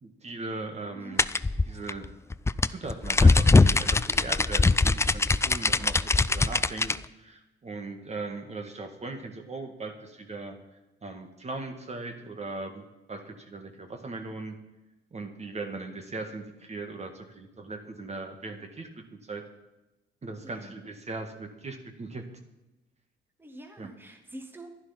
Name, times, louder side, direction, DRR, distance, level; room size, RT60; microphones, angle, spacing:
voice 1, 0.0-1.2 1.7-2.1 2.7-6.9 7.2-10.6 11.0-14.5 15.1-18.9 19.3-19.5 20.2-22.2 23.8-23.9, right 3 dB, 35° right, 5 dB, 1.8 m, -39 dB
sound 1, 1.2-7.0, left 3 dB, 15° left, 0.4 m, -21 dB
voice 2, 20.4-20.8 23.4-24.7, right 1 dB, 10° right, 4 dB, 1.7 m, -46 dB
11.5 x 11.0 x 5.8 m, 0.99 s
cardioid pair, 90°, 20 cm